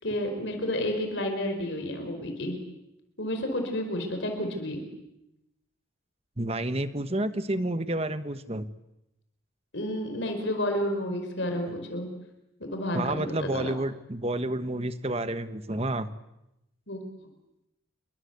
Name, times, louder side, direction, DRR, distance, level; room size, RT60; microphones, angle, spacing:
voice 1, 0.0-2.6 3.2-4.8 9.7-12.1 12.7-13.7 16.9-17.3, left 1 dB, 60° left, 5 dB, 4.8 m, -31 dB
voice 2, 6.4-8.7 12.9-16.1, right 1 dB, 30° right, 11 dB, 1.3 m, -30 dB
28.0 x 24.0 x 8.2 m, 0.89 s
head